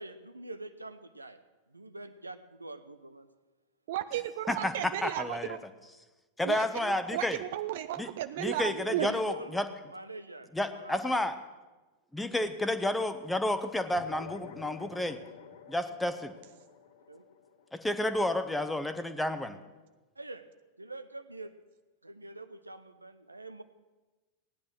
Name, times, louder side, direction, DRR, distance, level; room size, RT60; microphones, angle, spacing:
voice 1, 0.0-1.4 1.7-3.3 8.8-11.2 17.1-17.3 20.2-20.5 20.8-21.5 22.0-23.6, right 2 dB, 80° right, 10 dB, 0.8 m, -45 dB
voice 2, 3.9-5.6 6.4-9.1, right 13 dB, 55° right, 10 dB, 0.5 m, -34 dB
voice 3, 5.0-5.6 6.4-7.4 8.0-8.1 8.4-9.6 10.5-11.4 12.1-15.2 15.7-16.3 17.7-19.6, left 1 dB, 5° left, 10 dB, 1.0 m, -31 dB
sound 1, 13.9-18.7, left 7 dB, 60° left, 1.5 m, -50 dB
17.0 x 10.0 x 6.3 m, 1.2 s
figure-of-eight pair, 90°, 0 cm